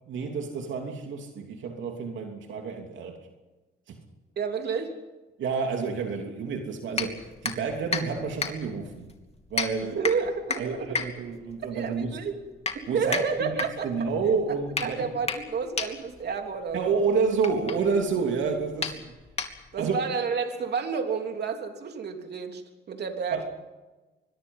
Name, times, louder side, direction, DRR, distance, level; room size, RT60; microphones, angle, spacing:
voice 1, 0.1-3.2 3.9-4.0 5.4-9.1 9.5-10.0 10.6-12.1 12.9-15.0 16.7-19.0 19.8-20.0 23.3-23.5, right 5 dB, 70° right, 3.0 m, -29 dB
voice 2, 4.4-4.9 9.8-10.9 11.7-12.4 12.9-13.9 14.5-17.0 19.7-22.6 22.9-23.5, right 5 dB, 55° right, 3.4 m, -30 dB
sound 1, 6.9-19.9, left 4 dB, 30° left, 2.9 m, -35 dB
25.0 x 22.5 x 5.6 m
cardioid pair, 90°, 20 cm